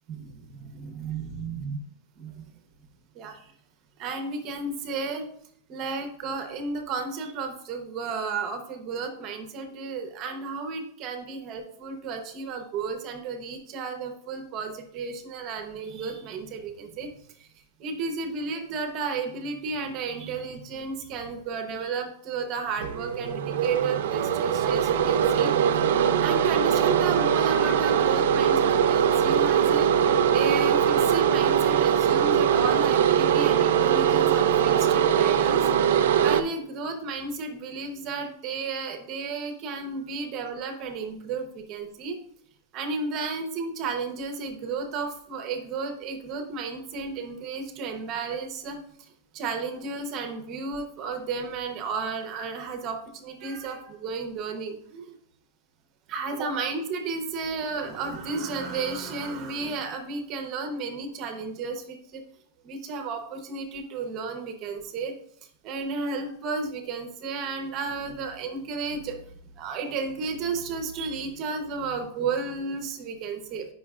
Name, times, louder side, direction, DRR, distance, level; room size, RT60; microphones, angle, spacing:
voice 1, 0.2-1.8 2.2-2.5 3.1-3.5 4.0-5.3 5.7-17.1 17.4-17.5 17.8-25.5 26.2-30.1 30.3-35.7 36.2-42.2 42.7-48.8 49.3-55.1 56.1-62.2 62.6-65.1 65.6-69.2 69.6-73.7, right 4 dB, 30° right, 5 dB, 0.8 m, -33 dB
sound 1, 22.8-36.4, right 8 dB, 70° right, 0.5 m, -22 dB
9.1 x 5.6 x 2.4 m, 0.67 s
supercardioid pair, 165°, 0 cm